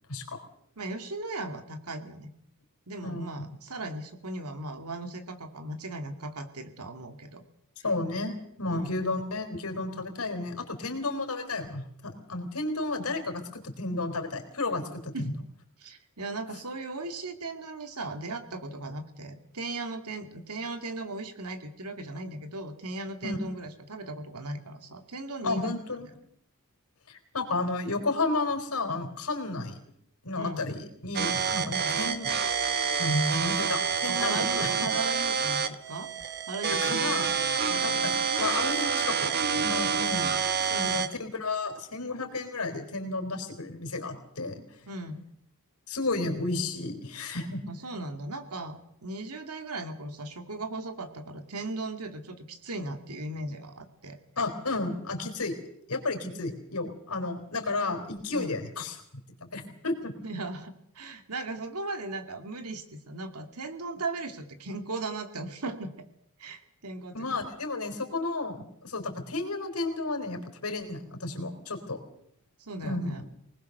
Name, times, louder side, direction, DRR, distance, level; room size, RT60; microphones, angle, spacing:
voice 1, 0.1-0.4 3.0-3.5 7.8-15.3 23.2-23.4 25.4-26.1 27.1-29.8 30.2-32.3 33.0-34.9 36.8-37.3 37.7-40.3 40.7-44.7 45.9-47.6 54.4-55.5 55.9-59.0 59.4-60.1 67.1-72.0 72.8-73.2, left 2 dB, 80° left, 5 dB, 4.2 m, -32 dB
voice 2, 0.8-2.3 2.9-7.4 8.7-8.9 15.1-15.3 15.8-25.7 30.4-30.6 31.7-32.0 34.0-36.1 36.5-37.0 37.7-38.1 40.7-41.1 44.9-45.2 47.7-54.2 58.3-58.5 60.2-65.9 66.4-67.2 72.6-73.2, right 2 dB, 90° right, 7 dB, 2.4 m, -37 dB
sound 1, 31.1-41.1, right 6 dB, 45° right, 1.2 m, -28 dB
23.5 x 20.0 x 6.8 m, 0.71 s
head